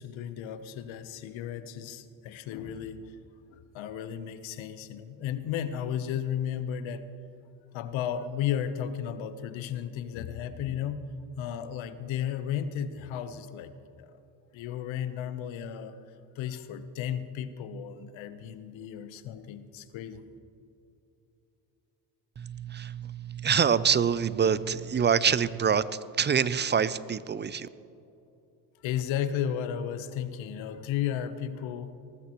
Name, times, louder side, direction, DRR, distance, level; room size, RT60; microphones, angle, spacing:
voice 1, 0.0-3.2 3.5-7.0 7.7-11.0 11.4-13.7 14.0-14.1 14.5-16.0 16.3-20.2 28.8-31.9, left 9 dB, 70° left, 11 dB, 1.0 m, -34 dB
voice 2, 22.4-25.9 26.2-27.7, right 7 dB, 25° right, 17 dB, 0.4 m, -26 dB
19.5 x 14.5 x 3.1 m, 2.8 s
supercardioid pair, 65°, 48 cm